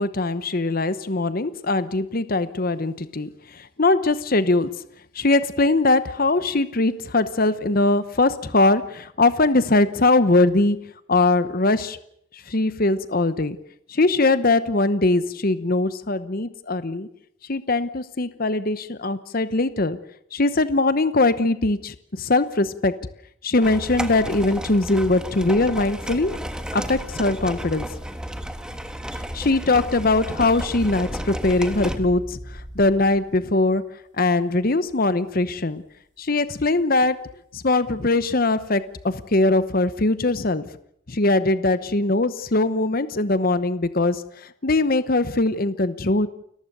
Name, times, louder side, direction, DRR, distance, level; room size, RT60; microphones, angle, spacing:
voice 1, 0.0-4.7 5.1-10.8 11.1-12.0 12.5-13.6 13.9-17.1 17.5-20.0 20.3-22.9 23.4-26.4 26.7-27.9 29.3-33.8 34.2-35.8 36.2-37.2 37.5-40.6 41.1-46.3, left 2 dB, 45° left, 13 dB, 0.9 m, -21 dB
sound 1, 23.6-32.0, equal, 5° right, 1.4 m, -33 dB
sound 2, 24.8-33.6 34.3-34.7 35.3-35.4 39.0-39.6, equal, 40° right, 6.7 m, -39 dB
29.5 x 15.0 x 6.8 m, 0.72 s
head